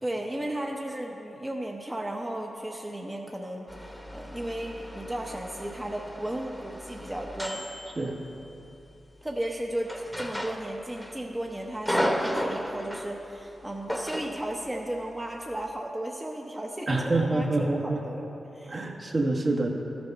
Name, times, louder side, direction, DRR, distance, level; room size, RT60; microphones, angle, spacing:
voice 1, 0.0-7.7 9.2-18.3 18.5-18.9, right 1 dB, 15° right, 0 dB, 0.9 m, -35 dB
sound 1, 3.7-8.7 9.9-11.1 11.4-13.2 13.9-14.4, equal, 5° left, 1.1 m, -34 dB
voice 2, 16.9-18.0 18.7-19.7, right 2 dB, 50° right, 0 dB, 1.6 m, -26 dB
13.0 x 7.0 x 5.4 m, 3.0 s
cardioid pair, 50°, 0 cm